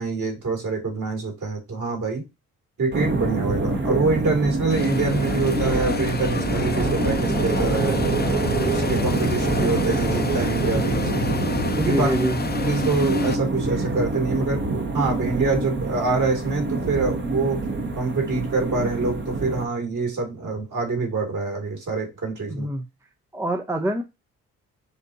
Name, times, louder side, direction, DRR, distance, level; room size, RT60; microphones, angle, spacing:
voice 1, 0.0-2.2 2.8-8.0 8.6-11.4 11.8-12.1 12.6-14.7 14.9-17.6 17.9-22.7, right 3 dB, 50° right, 2.8 m, -25 dB
sound 1, 2.9-19.7, right 3 dB, 30° right, 1.1 m, -26 dB
sound 2, 4.7-13.4, left 5 dB, 25° left, 0.8 m, -29 dB
voice 2, 11.9-12.4 22.5-22.9 23.3-24.0, right 1 dB, 5° right, 0.6 m, -25 dB
6.9 x 2.7 x 2.7 m
hypercardioid pair, 50°, 38 cm